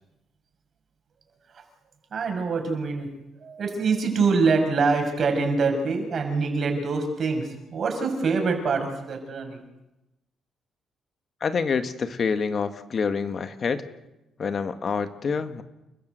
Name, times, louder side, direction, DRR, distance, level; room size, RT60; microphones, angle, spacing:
voice 1, 2.1-3.1 3.4-9.6, right 4 dB, 55° right, 4 dB, 6.7 m, -25 dB
voice 2, 11.4-13.8 14.4-15.6, left 5 dB, 45° left, 9 dB, 1.7 m, -27 dB
30.0 x 14.0 x 8.1 m, 0.95 s
cardioid pair, 90°, 0 cm